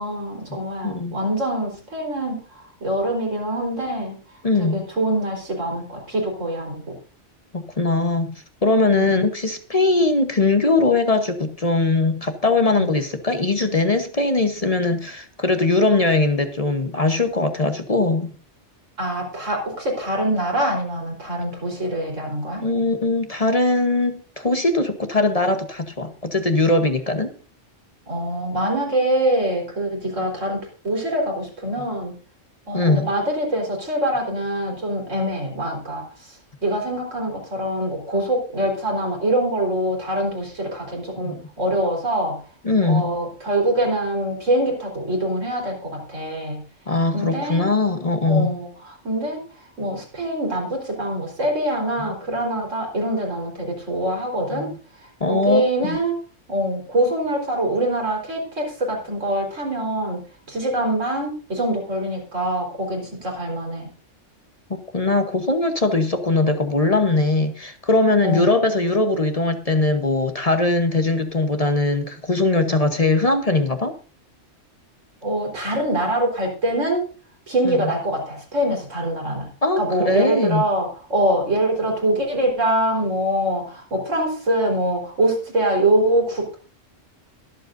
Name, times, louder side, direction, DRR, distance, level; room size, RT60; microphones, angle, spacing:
voice 1, 0.0-4.2 4.6-7.0 8.9-9.2 12.8-12.9 19.0-22.6 28.1-32.1 32.7-42.4 42.8-46.6 47.1-47.6 48.3-54.7 55.2-56.2 56.5-60.2 60.5-63.9 68.2-68.5 75.2-77.1 77.5-79.5 79.8-86.6, right 1 dB, 90° right, 1 dB, 4.6 m, -24 dB
voice 2, 0.8-1.1 4.4-4.9 7.5-18.3 22.6-27.3 32.7-33.1 41.2-41.3 42.6-43.2 46.9-48.6 52.0-52.1 54.5-54.6 55.2-56.0 64.7-73.9 77.6-77.9 79.6-80.6, left 2 dB, 30° left, 7 dB, 1.1 m, -21 dB
22.5 x 7.9 x 2.6 m, 0.37 s
omnidirectional pair, 1.3 m